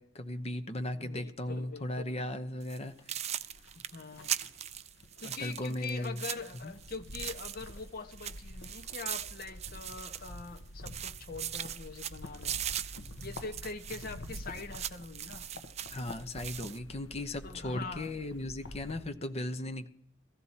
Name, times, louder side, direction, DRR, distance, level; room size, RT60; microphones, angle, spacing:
voice 1, 0.0-2.9 5.2-6.2 6.6-6.7 15.9-19.9, left 1 dB, 35° left, 8 dB, 0.9 m, -37 dB
voice 2, 0.9-2.2 3.8-4.3 5.2-12.6 13.2-15.4 17.4-18.1, left 4 dB, 50° left, 8 dB, 1.0 m, -43 dB
sound 1, 2.6-2.8 3.1-7.8 8.1-10.6 10.9-16.8, right 10 dB, 35° right, 0.4 m, -40 dB
sound 2, 2.9-19.1, left 1 dB, 70° left, 0.9 m, -48 dB
16.5 x 14.0 x 4.2 m, 0.70 s
head